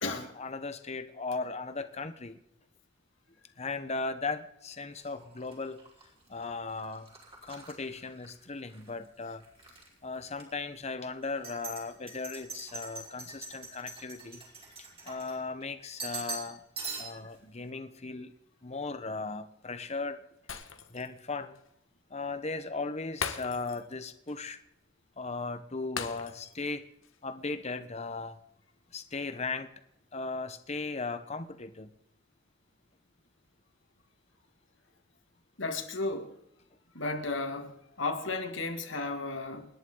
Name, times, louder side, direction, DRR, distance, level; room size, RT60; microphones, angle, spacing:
voice 1, 0.0-2.4 3.6-5.8 6.3-7.1 7.4-9.4 10.0-14.4 15.0-16.6 17.0-18.3 18.6-20.2 20.9-21.6 22.1-24.6 25.2-26.8 27.2-28.4 28.9-29.7 30.1-31.9, left 3 dB, 35° left, 1.1 m, -37 dB
sound 1, 4.9-8.9 9.2-9.9 10.3-10.4 11.2-15.6 16.0-16.5 16.8-17.3, right 4 dB, 30° right, 4.6 m, -43 dB
Shatter, 20.5-21.2 21.6-21.7 23.2-24.0 24.3-24.4 26.0-26.7 27.0-27.2, left 6 dB, 85° left, 1.5 m, -39 dB
voice 2, 35.6-36.3 36.9-37.7 38.0-39.7, left 3 dB, 70° left, 2.3 m, -33 dB
28.5 x 10.5 x 4.0 m
head